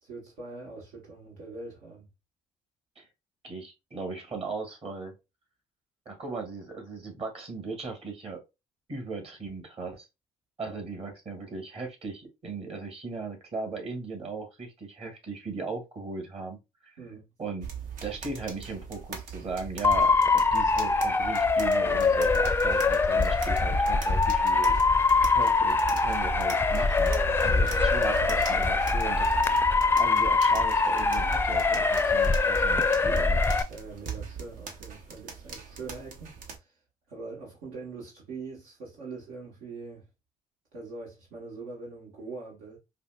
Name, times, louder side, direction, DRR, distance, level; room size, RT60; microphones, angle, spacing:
voice 1, 0.0-2.1 10.6-10.8 17.0-17.3 27.7-27.8 33.7-36.8 37.1-40.0 40.7-42.8, right 3 dB, 85° right, 1.2 m, -43 dB
voice 2, 3.4-5.1 6.1-8.4 8.9-10.1 10.6-16.6 17.4-17.7 18.0-24.8 25.3-27.1 27.4-33.4, right 4 dB, 45° right, 1.8 m, -37 dB
sound 1, 17.6-36.6, right 7 dB, 70° right, 0.8 m, -41 dB
Motor vehicle (road) / Siren, 19.8-33.6, left 3 dB, 15° left, 0.4 m, -23 dB
4.9 x 2.1 x 2.2 m
supercardioid pair, 60°, 14 cm